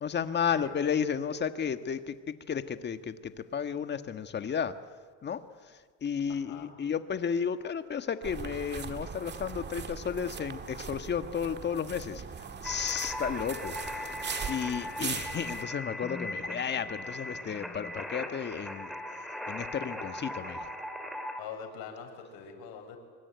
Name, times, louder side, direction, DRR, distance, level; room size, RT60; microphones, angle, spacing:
voice 1, 0.0-4.8 5.2-20.7, left 7 dB, 30° left, 10 dB, 1.5 m, -33 dB
voice 2, 6.3-6.7 21.4-23.0, left 7 dB, 70° left, 4 dB, 6.9 m, -44 dB
sound 1, 8.2-15.6, right 6 dB, 30° right, 1.8 m, -40 dB
sound 2, 12.6-21.4, left 1 dB, ahead, 3.1 m, -39 dB
25.0 x 24.0 x 9.4 m, 1.5 s
cardioid pair, 125°, 37 cm